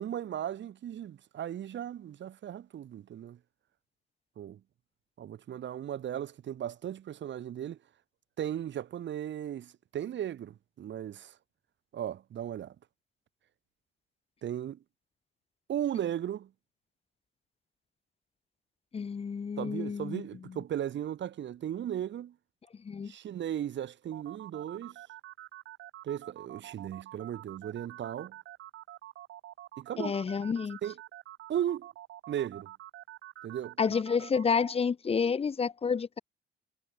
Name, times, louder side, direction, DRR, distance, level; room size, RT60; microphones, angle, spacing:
voice 1, 0.0-3.4 4.4-4.6 5.2-7.8 8.4-11.4 11.9-12.8 14.4-14.8 15.7-16.5 19.6-22.3 23.0-25.0 26.0-28.3 29.8-30.2 30.8-31.0 31.5-31.9 32.3-32.7 33.4-33.8, right 10 dB, 65° right, 4.0 m, -36 dB
voice 2, 18.9-20.2 22.8-23.1 30.0-30.8 33.8-36.2, left 6 dB, 30° left, 0.7 m, -29 dB
sound 1, 24.1-34.7, right 14 dB, 85° right, 3.1 m, -47 dB
cardioid pair, 90°, 20 cm